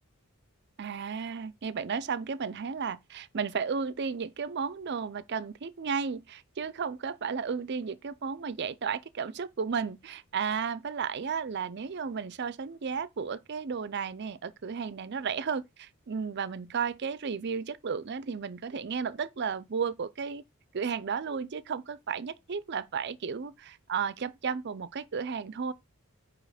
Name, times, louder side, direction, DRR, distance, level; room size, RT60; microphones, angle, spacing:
voice 1, 0.8-20.4 20.7-25.7, right 6 dB, 50° right, 0.5 m, -33 dB
8.9 x 3.0 x 5.0 m
head